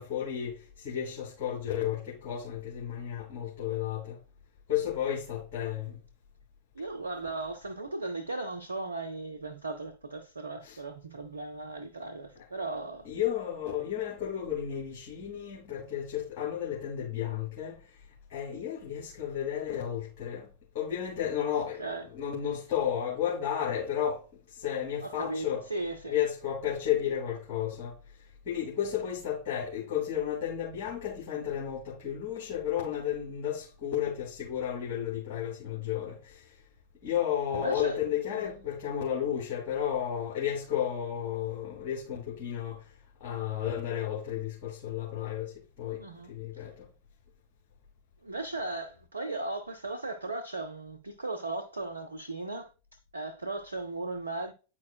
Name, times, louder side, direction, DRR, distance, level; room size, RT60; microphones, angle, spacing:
voice 1, 0.0-4.2 4.7-6.0 10.6-10.8 13.0-17.8 18.3-20.5 20.7-21.9 22.1-24.2 24.6-25.6 26.0-28.0 28.5-36.5 37.0-42.8 43.2-45.5 45.8-46.9, left 10 dB, 45° left, 2.1 m, -32 dB
voice 2, 6.7-13.1 21.8-22.1 25.0-26.1 37.5-38.0 38.3-38.5 46.0-46.3 48.2-54.5, right 2 dB, 75° right, 0.6 m, -37 dB
9.7 x 4.6 x 2.2 m
figure-of-eight pair, 90°, 0 cm